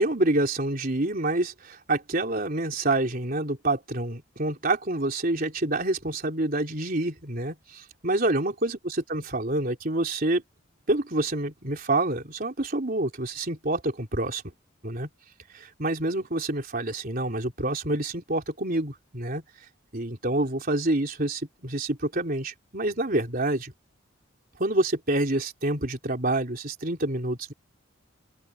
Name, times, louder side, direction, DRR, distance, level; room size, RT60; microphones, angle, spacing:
voice 1, 0.0-10.4 10.9-14.5 14.8-15.1 15.5-19.4 19.9-23.7 24.6-27.5, right 2 dB, 45° right, 3.6 m, -27 dB
open air
head